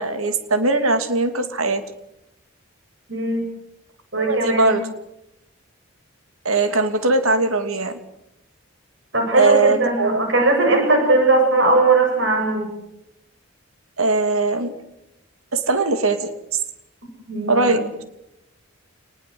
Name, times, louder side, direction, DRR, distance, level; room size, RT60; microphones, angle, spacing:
voice 1, 0.0-1.8 4.2-4.9 6.4-8.0 9.3-10.2 14.0-14.7 15.5-16.6 17.5-17.8, right 3 dB, 80° right, 8 dB, 2.8 m, -20 dB
voice 2, 3.1-3.4 4.1-4.8 9.1-12.7 17.3-17.8, right 2 dB, 55° right, 2 dB, 7.7 m, -19 dB
29.0 x 20.5 x 7.9 m, 0.86 s
head